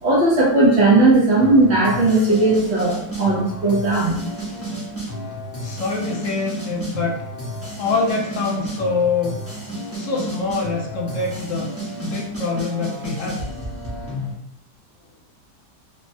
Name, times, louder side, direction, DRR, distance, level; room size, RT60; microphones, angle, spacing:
voice 1, 0.0-4.2, right 2 dB, 65° right, -5 dB, 0.6 m, -17 dB
sound 1, 1.4-14.3, right 1 dB, 20° right, 0.4 m, -32 dB
voice 2, 5.6-7.2 7.8-9.4 9.9-11.7 12.0-13.5, left 4 dB, 65° left, -1 dB, 0.8 m, -24 dB
3.3 x 2.1 x 2.6 m, 0.73 s
omnidirectional pair, 1.8 m